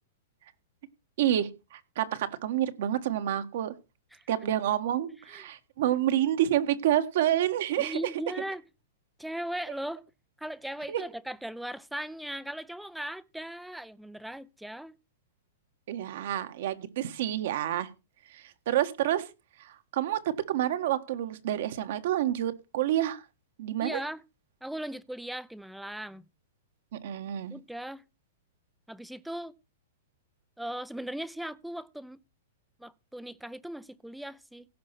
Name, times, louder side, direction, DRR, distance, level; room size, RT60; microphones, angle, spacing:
voice 1, 1.2-3.7 4.3-8.0 10.9-11.0 15.9-17.9 18.3-19.3 19.6-23.2 23.6-24.0 26.9-27.5, right 12 dB, 60° right, 1.5 m, -28 dB
voice 2, 7.8-8.6 9.2-10.0 10.4-15.0 23.8-24.2 24.6-26.2 27.5-28.0 28.9-29.5 30.6-32.2 32.8-34.7, right 1 dB, ahead, 0.5 m, -38 dB
16.5 x 5.6 x 5.9 m
hypercardioid pair, 145°, 0 cm